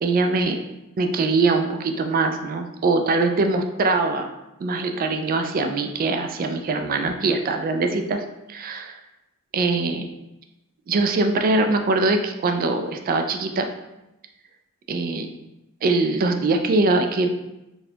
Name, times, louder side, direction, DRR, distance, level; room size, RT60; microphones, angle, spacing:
voice 1, 0.0-0.6 1.0-4.3 4.6-9.0 9.5-10.0 10.9-13.7 14.9-15.3 15.8-17.3, right 3 dB, 40° right, 6 dB, 0.3 m, -22 dB
4.1 x 2.3 x 2.7 m, 0.93 s
head